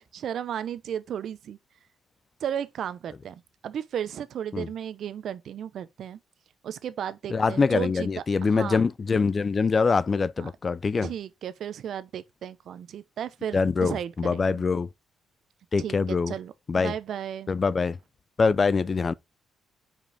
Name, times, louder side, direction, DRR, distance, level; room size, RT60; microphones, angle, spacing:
voice 1, 0.0-1.6 2.4-6.2 6.6-8.9 10.4-10.5 11.0-14.6 15.8-17.5, right 9 dB, 65° right, 0.7 m, -34 dB
voice 2, 7.3-11.1 13.5-14.9 15.7-16.3 16.7-16.9 17.5-18.0 18.4-19.1, left 4 dB, 35° left, 0.4 m, -24 dB
5.3 x 4.9 x 4.9 m
cardioid pair, 90°, 0 cm